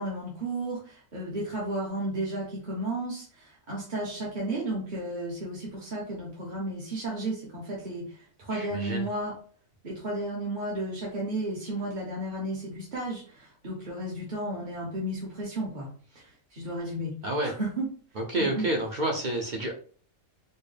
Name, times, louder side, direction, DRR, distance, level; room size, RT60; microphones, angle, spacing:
voice 1, 0.0-9.3 9.8-15.9 16.1-17.2 17.4-17.9 18.4-18.7, right 1 dB, 40° right, -5 dB, 0.9 m, -33 dB
voice 2, 8.5-9.0 17.2-17.5 18.2-19.7, right 1 dB, 65° right, 1 dB, 0.4 m, -29 dB
4.4 x 2.0 x 3.3 m, 0.43 s
omnidirectional pair, 1.5 m